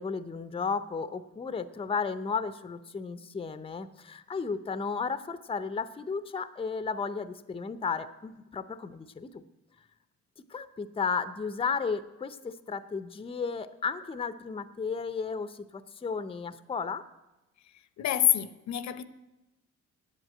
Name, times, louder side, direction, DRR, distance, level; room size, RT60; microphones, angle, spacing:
voice 1, 0.0-9.4 10.5-17.0, left 5 dB, 20° left, 0.6 m, -34 dB
voice 2, 18.0-19.0, left 11 dB, 65° left, 0.7 m, -26 dB
8.4 x 8.0 x 8.7 m
cardioid pair, 90°, 30 cm